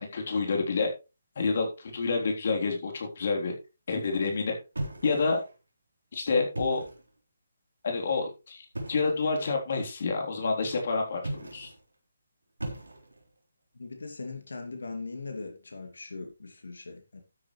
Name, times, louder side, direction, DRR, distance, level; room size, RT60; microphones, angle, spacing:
voice 1, 0.1-0.9 1.4-3.5 3.9-4.5 5.0-5.4 6.1-6.8 7.8-11.7, left 4 dB, 55° left, 1 dB, 3.6 m, -28 dB
sound 1, 4.7-5.6 6.4-7.1 8.7-9.2 11.2-11.8 12.6-13.3, right 1 dB, 85° right, 3.7 m, -38 dB
voice 2, 13.7-17.2, left 3 dB, 75° left, 4 dB, 2.6 m, -40 dB
12.5 x 9.6 x 3.2 m, 0.29 s
figure-of-eight pair, 145°, 0 cm